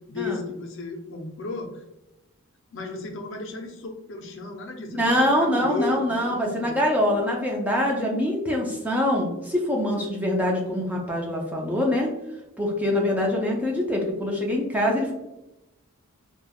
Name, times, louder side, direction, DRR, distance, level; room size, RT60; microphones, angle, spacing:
voice 1, 0.1-1.8 2.7-6.8, left 3 dB, 60° left, 4 dB, 0.5 m, -34 dB
voice 2, 4.9-12.1 12.6-15.1, left 1 dB, 5° right, -1 dB, 0.4 m, -24 dB
3.2 x 2.1 x 2.2 m, 0.95 s
head